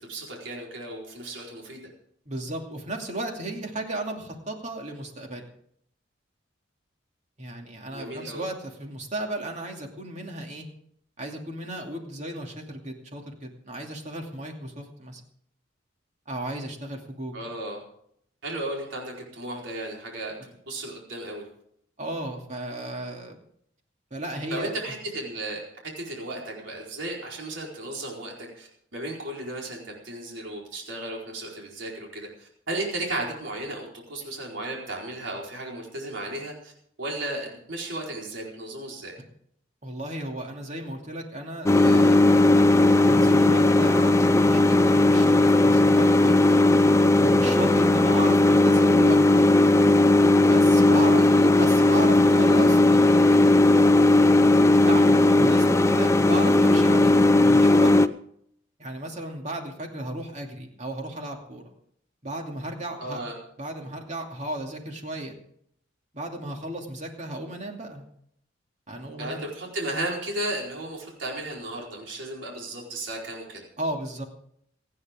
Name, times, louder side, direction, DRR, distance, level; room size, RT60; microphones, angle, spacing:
voice 1, 0.1-1.9 7.9-8.4 17.3-17.8 18.4-20.3 20.7-21.4 24.5-25.6 26.0-36.7 37.0-39.2 51.2-51.5 63.0-63.3 69.2-73.6, right 1 dB, 75° right, -2 dB, 4.4 m, -34 dB
voice 2, 2.3-5.4 7.4-10.7 11.2-15.2 16.3-17.4 22.0-23.4 24.1-24.7 39.8-42.5 43.1-46.5 47.2-49.2 50.4-51.3 51.5-53.6 54.8-57.9 58.8-61.7 62.2-63.2 63.6-65.3 66.1-68.0 68.9-69.4 73.8-74.2, right 1 dB, 40° right, 2 dB, 2.7 m, -35 dB
sound 1, 41.7-58.1, left 2 dB, 15° left, 0.5 m, -17 dB
28.0 x 9.8 x 3.7 m, 0.69 s
head